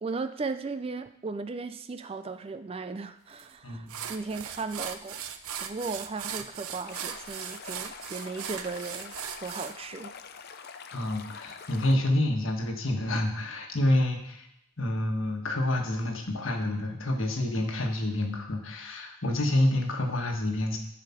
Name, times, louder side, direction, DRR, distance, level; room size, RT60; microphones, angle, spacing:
voice 1, 0.0-5.2 5.6-10.1, right 4 dB, 25° right, 11 dB, 0.4 m, -36 dB
sound 1, 3.4-3.5 3.9-9.7, right 8 dB, 85° right, 0.7 m, -38 dB
voice 2, 3.6-4.0 10.9-14.5 14.8-20.8, left 1 dB, 65° left, 2 dB, 1.5 m, -28 dB
Stream, 6.8-11.9, left 6 dB, 50° left, 0.6 m, -45 dB
11.5 x 5.0 x 5.8 m, 0.76 s
head